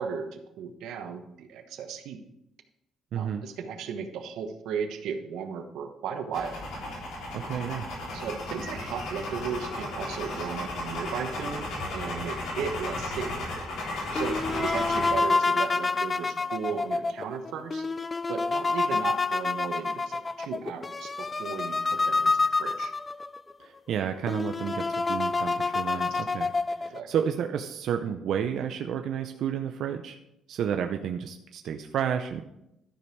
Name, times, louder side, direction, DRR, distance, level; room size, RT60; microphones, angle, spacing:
voice 1, 0.0-2.2 3.1-6.5 8.1-13.4 14.1-17.9 18.3-22.9 25.9-26.2 26.8-27.1, right 6 dB, 80° right, 6 dB, 1.1 m, -35 dB
voice 2, 3.1-3.5 7.3-7.9 23.6-26.5 26.8-30.2 30.5-32.4, right 8 dB, 65° right, 5 dB, 0.6 m, -31 dB
sound 1, 6.3-15.1, left 2 dB, 85° left, 3.6 m, -34 dB
sound 2, 14.1-23.4 23.9-24.0 24.3-27.0, left 3 dB, 20° left, 0.3 m, -28 dB
12.5 x 5.3 x 4.7 m, 0.84 s
cardioid pair, 135°, 0 cm